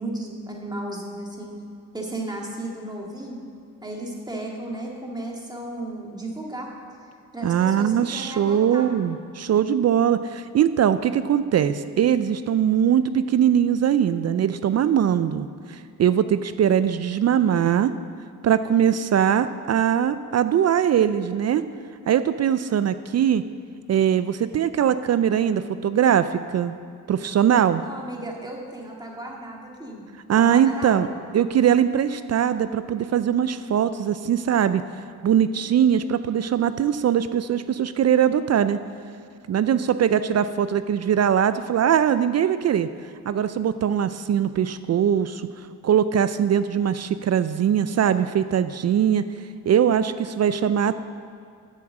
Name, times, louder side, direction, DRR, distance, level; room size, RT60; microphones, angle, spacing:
voice 1, 0.0-1.5 1.9-3.4 3.8-6.7 7.3-8.9 27.8-30.0 30.5-31.1, right 1 dB, 10° right, -1 dB, 2.0 m, -34 dB
voice 2, 7.4-17.9 18.4-21.6 22.1-23.4 23.9-26.7 27.1-27.8 30.3-31.1 31.3-34.8 35.2-38.8 39.5-42.9 43.3-45.5 45.8-49.3 49.7-50.9, right 9 dB, 45° right, 13 dB, 0.4 m, -21 dB
7.3 x 6.8 x 7.4 m, 2.4 s
cardioid pair, 75°, 37 cm